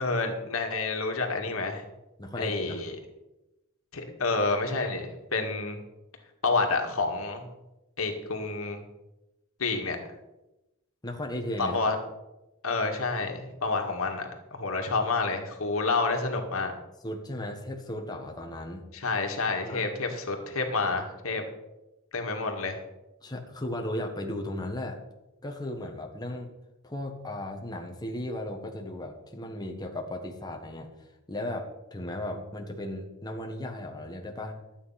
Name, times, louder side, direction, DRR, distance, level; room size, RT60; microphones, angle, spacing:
voice 1, 0.0-1.8 2.4-3.0 3.9-5.8 6.4-7.4 8.0-8.8 9.6-10.0 11.6-12.0 12.6-16.7 18.9-21.4 22.1-22.8, left 3 dB, 85° left, 3 dB, 2.0 m, -29 dB
voice 2, 2.2-2.8 11.0-11.8 17.0-18.9 19.6-19.9 23.2-25.0 25.4-26.5 26.8-30.9 31.3-34.6, left 1 dB, 20° left, 2 dB, 1.4 m, -36 dB
12.5 x 8.7 x 5.8 m, 0.98 s
head